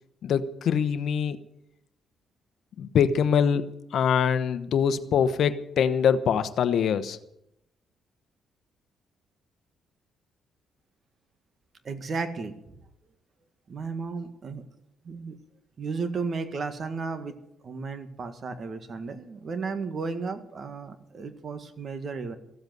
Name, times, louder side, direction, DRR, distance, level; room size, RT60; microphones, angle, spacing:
voice 1, 0.2-1.4 2.8-7.2, left 7 dB, 65° left, 12 dB, 0.9 m, -24 dB
voice 2, 11.9-12.5 13.7-14.6 15.0-15.4 15.8-17.3 17.6-22.4, right 4 dB, 45° right, 8 dB, 1.8 m, -34 dB
15.0 x 8.0 x 9.3 m, 0.81 s
cardioid pair, 90°, 0 cm